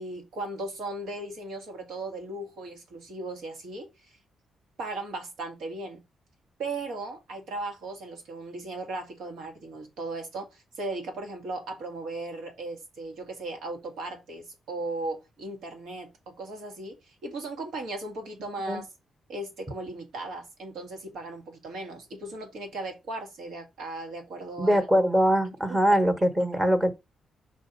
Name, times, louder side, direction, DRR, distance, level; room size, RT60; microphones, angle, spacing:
voice 1, 0.0-4.1 4.8-6.0 6.6-18.9 19.3-24.8 25.7-25.8, right 2 dB, 85° right, 2.4 m, -37 dB
voice 2, 24.6-26.9, equal, 15° right, 1.3 m, -22 dB
5.1 x 4.6 x 5.5 m
cardioid pair, 140°, 0 cm